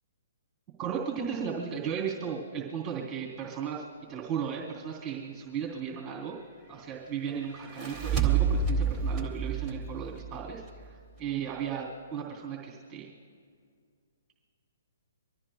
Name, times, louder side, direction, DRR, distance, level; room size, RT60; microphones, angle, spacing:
voice 1, 0.8-3.8 4.1-6.4 6.7-13.1, right 7 dB, 15° right, 0 dB, 3.2 m, -35 dB
sound 1, 7.6-10.9, right 6 dB, 5° left, 2.2 m, -29 dB
26.0 x 14.0 x 2.3 m, 2.1 s
hypercardioid pair, 145°, 0 cm